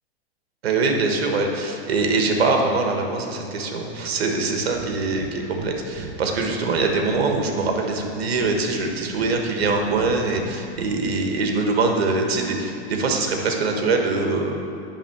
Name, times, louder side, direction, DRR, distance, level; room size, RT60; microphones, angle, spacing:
voice 1, 0.6-14.5, right 3 dB, 75° right, 2 dB, 1.5 m, -23 dB
Breathing, 4.7-4.9 5.1-5.3 5.6-5.7 6.0-7.3 7.6-8.5 8.8-9.7 10.0-10.9, right 4 dB, 30° right, 1.0 m, -38 dB
11.0 x 3.7 x 6.9 m, 2.7 s
hypercardioid pair, 125°, 31 cm